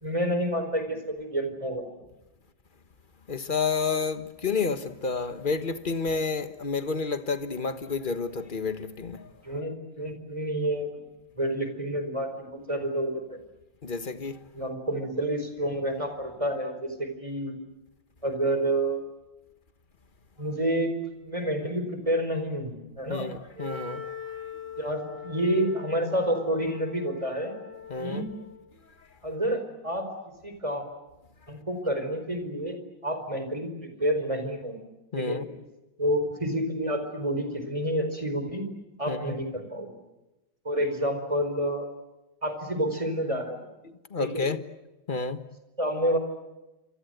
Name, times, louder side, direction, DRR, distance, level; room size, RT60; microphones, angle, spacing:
voice 1, 0.0-1.8 9.4-11.0 11.3-13.4 14.5-17.6 18.2-19.1 20.4-20.9 21.2-23.3 24.8-27.5 28.0-28.3 29.2-30.1 30.4-30.8 31.5-32.8 33.0-34.8 35.2-35.4 36.0-38.6 39.0-39.9 40.6-41.8 42.4-43.6 44.2-44.4 45.8-46.2, right 1 dB, 15° right, 4.6 m, -29 dB
voice 2, 3.3-9.4 13.8-14.5 23.1-24.4 27.9-28.3 28.8-29.2 35.1-35.5 39.1-39.3 43.8-44.7 45.1-45.4, left 4 dB, 30° left, 1.2 m, -30 dB
Wind instrument woodwind instrument, 23.6-28.7, left 6 dB, 80° right, 7.0 m, -41 dB
28.0 x 25.5 x 8.0 m
omnidirectional pair, 2.2 m